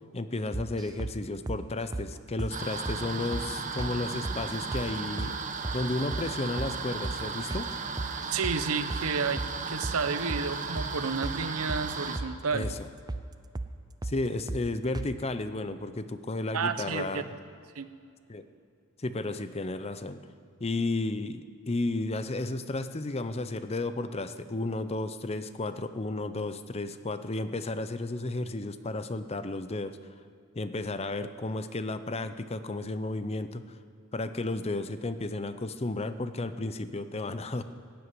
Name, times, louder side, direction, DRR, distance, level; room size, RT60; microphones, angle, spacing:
voice 1, 0.1-5.3 5.7-7.7 12.5-12.7 14.0-17.3 18.3-18.4 19.0-20.2 20.6-30.0 30.6-33.6 34.1-37.6, left 2 dB, 30° left, 11 dB, 0.6 m, -33 dB
sound 1, 0.5-1.2 1.5-1.6 1.9-2.1 2.4-2.6 2.9-3.0 3.3-3.5 3.8-3.9 4.3-4.9 5.2-5.3 5.6-5.8 6.1-6.3 6.6-6.7 7.0-7.2 7.5-7.7 8.0-8.6 8.9-9.1 9.4-9.5 9.8-10.0 10.3-10.5 10.8-10.9 11.2-11.4 11.7-12.3 12.6-12.8 13.1-13.3 13.6-13.7 14.0-14.2 14.5-14.6 14.9-15.1, right 2 dB, 20° right, 0.4 m, -35 dB
sound 2, 2.5-12.2, right 4 dB, 35° right, 0.9 m, -36 dB
voice 2, 8.3-12.7 16.5-17.2 17.7-17.9, right 5 dB, 80° right, 12 dB, 0.8 m, -31 dB
15.0 x 8.1 x 9.7 m, 2.4 s
head